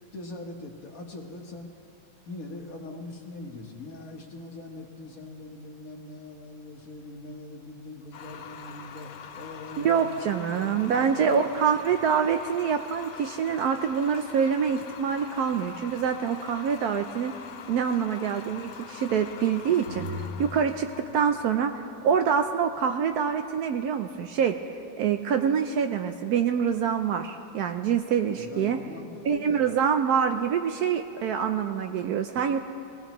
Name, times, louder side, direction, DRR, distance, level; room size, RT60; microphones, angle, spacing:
voice 1, 0.1-1.7 2.2-10.2 10.5-11.4 28.3-29.8, left 2 dB, 55° left, 2 dB, 1.5 m, -42 dB
sound 1, 8.1-23.1, left 7 dB, 75° left, 1.3 m, -44 dB
voice 2, 9.8-17.3 17.7-24.5 25.0-28.8 29.2-32.6, right 7 dB, 70° right, 6 dB, 1.0 m, -26 dB
sound 2, 19.9-21.7, left 2 dB, 90° right, 2.9 m, -38 dB
21.0 x 16.0 x 3.0 m, 2.7 s
omnidirectional pair, 1.9 m